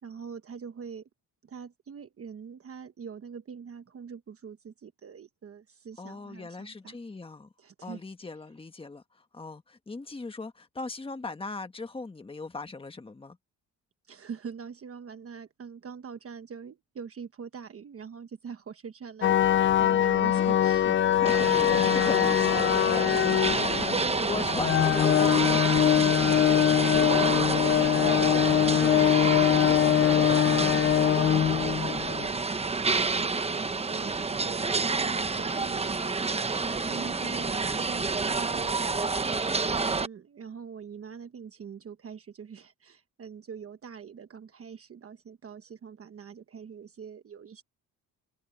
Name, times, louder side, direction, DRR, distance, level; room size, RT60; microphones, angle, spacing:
voice 1, 0.0-1.1 1.4-6.9 7.6-8.3 14.1-21.0 25.4-39.3 39.8-47.6, right 6 dB, 40° right, 1.2 m, -44 dB
voice 2, 6.0-7.5 7.8-13.4 20.3-20.5 21.1-25.5 36.9-37.5, left 3 dB, 15° left, 1.4 m, -39 dB
sound 1, 19.2-32.3, left 11 dB, 35° left, 0.4 m, -23 dB
sound 2, 21.3-40.1, right 4 dB, 15° right, 0.8 m, -29 dB
cardioid pair, 130°, 36 cm